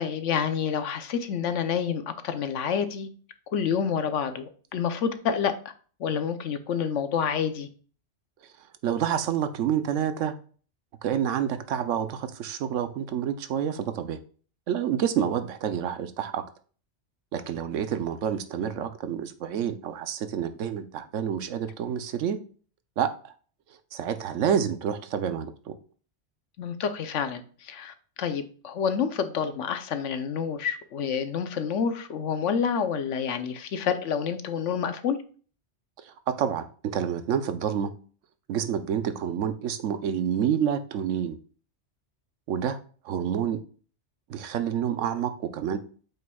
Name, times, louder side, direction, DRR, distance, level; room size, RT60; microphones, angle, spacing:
voice 1, 0.0-3.1 3.5-5.5 6.0-7.7 26.6-35.2, left 7 dB, 80° left, 1.1 m, -28 dB
voice 2, 8.8-10.3 11.0-14.2 14.7-16.4 17.3-22.4 23.0-23.3 23.9-25.8 36.0-37.9 38.5-41.4 42.5-42.8 43.0-43.6 44.3-45.8, right 8 dB, 85° right, 1.1 m, -28 dB
7.6 x 5.6 x 2.3 m
omnidirectional pair, 1.3 m